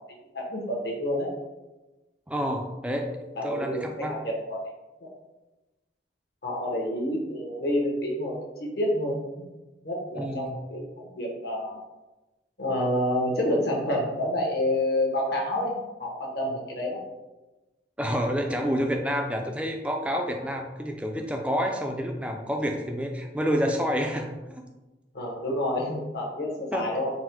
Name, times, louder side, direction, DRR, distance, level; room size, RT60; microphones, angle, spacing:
voice 1, 0.1-1.3 3.4-4.6 5.0-5.1 6.4-8.3 8.6-9.5 9.8-11.8 12.6-15.7 16.0-17.0 25.1-27.1, left 1 dB, 60° left, -2 dB, 0.9 m, -28 dB
voice 2, 2.3-3.1 3.4-4.1 10.1-10.6 18.0-24.6 26.7-26.9, equal, 5° right, 3 dB, 0.3 m, -28 dB
4.0 x 2.1 x 4.4 m, 1.1 s
head